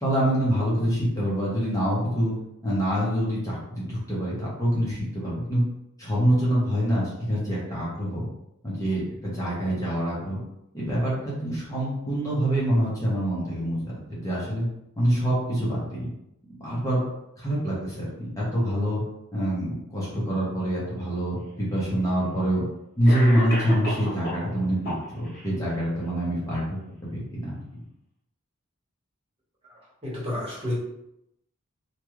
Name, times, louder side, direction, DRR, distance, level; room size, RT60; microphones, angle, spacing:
voice 1, 0.0-2.3 2.6-5.6 6.0-8.3 8.6-10.4 10.7-14.6 15.0-16.0 16.6-17.0 17.4-19.0 19.3-22.6 23.0-26.8 27.1-27.5, equal, 15° left, -7 dB, 0.9 m, -25 dB
Cough, 21.4-21.5 22.5-22.6 23.1-24.5 24.8-25.5, equal, 50° left, 1.4 m, -31 dB
voice 2, 30.0-30.7, left 1 dB, 30° right, -7 dB, 1.2 m, -30 dB
3.0 x 2.4 x 3.1 m, 0.83 s
head